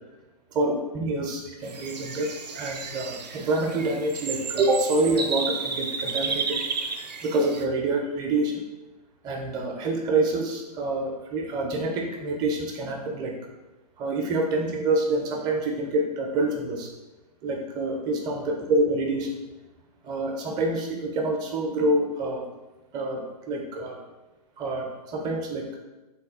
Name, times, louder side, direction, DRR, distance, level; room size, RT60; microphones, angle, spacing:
voice 1, 0.5-6.6 7.2-8.6 9.2-13.4 14.0-16.9 17.4-19.3 20.0-22.5 22.9-24.0 24.6-25.7, right 2 dB, 20° right, 2 dB, 0.4 m, -27 dB
sound 1, 1.6-7.7, right 5 dB, 90° right, 0.4 m, -32 dB
3.4 x 2.3 x 3.5 m, 1.1 s
hypercardioid pair, 125°, 21 cm